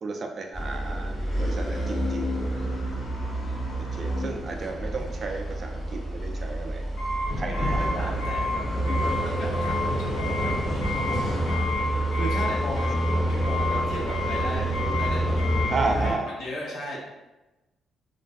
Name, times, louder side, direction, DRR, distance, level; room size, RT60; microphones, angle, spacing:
voice 1, 0.0-2.4 3.9-6.8 7.4-8.2 15.7-16.3, right 3 dB, 45° right, 3 dB, 0.3 m, -33 dB
sound 1, 0.5-16.1, equal, 30° left, 0.8 m, -27 dB
voice 2, 7.5-17.0, equal, 75° left, -4 dB, 0.8 m, -37 dB
2.4 x 2.2 x 2.4 m, 1.0 s
cardioid pair, 90°, 0 cm